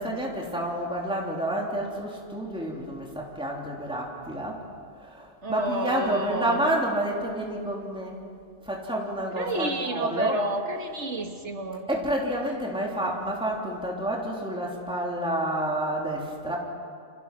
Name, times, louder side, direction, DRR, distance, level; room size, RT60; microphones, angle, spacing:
voice 1, 0.0-4.6 5.0-8.2 8.6-10.4 11.9-16.6, right 1 dB, 5° right, -2 dB, 3.2 m, -29 dB
voice 2, 5.4-6.6 9.4-11.8, right 1 dB, 70° right, 4 dB, 2.2 m, -30 dB
28.5 x 27.0 x 6.1 m, 2.2 s
omnidirectional pair, 1.2 m